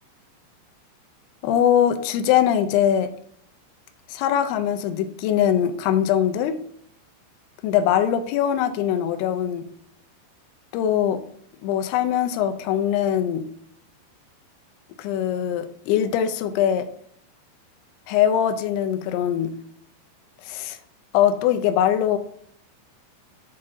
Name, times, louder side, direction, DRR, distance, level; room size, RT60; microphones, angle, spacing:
voice 1, 1.4-3.1 4.1-6.6 7.6-9.7 10.7-11.2 11.6-13.4 15.0-16.9 18.1-19.5 20.4-20.8 21.1-22.2, left 10 dB, 85° left, 8 dB, 2.4 m, -22 dB
8.6 x 4.0 x 3.7 m, 0.67 s
omnidirectional pair, 5.1 m